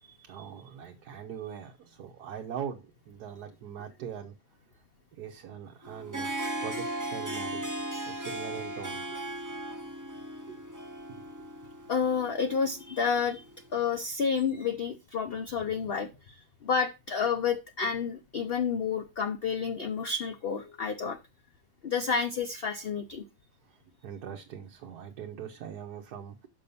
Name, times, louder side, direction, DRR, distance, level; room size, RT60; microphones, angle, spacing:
voice 1, 0.2-4.3 5.1-9.2 10.5-10.6 11.1-11.2 23.6-23.8 24.0-26.5, right 8 dB, 75° right, 1.4 m, -42 dB
Harp, 5.8-13.6, right 1 dB, 15° right, 0.7 m, -37 dB
voice 2, 11.9-13.4 13.7-21.2 21.8-23.2, left 6 dB, 45° left, 0.8 m, -30 dB
6.0 x 5.4 x 6.8 m
omnidirectional pair, 1.7 m